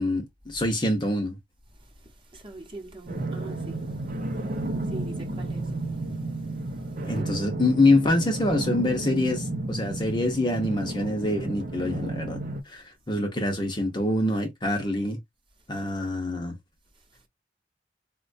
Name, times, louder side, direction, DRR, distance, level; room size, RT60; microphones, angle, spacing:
voice 1, 0.0-1.4 7.1-12.4 12.7-15.2 15.7-16.5, left 2 dB, 25° left, 0.7 m, -25 dB
voice 2, 2.0-3.9 4.4-6.0 7.0-7.3, right 2 dB, 30° right, 0.9 m, -43 dB
sound 1, 3.1-12.6, right 2 dB, 45° right, 0.5 m, -32 dB
4.0 x 2.2 x 2.5 m
head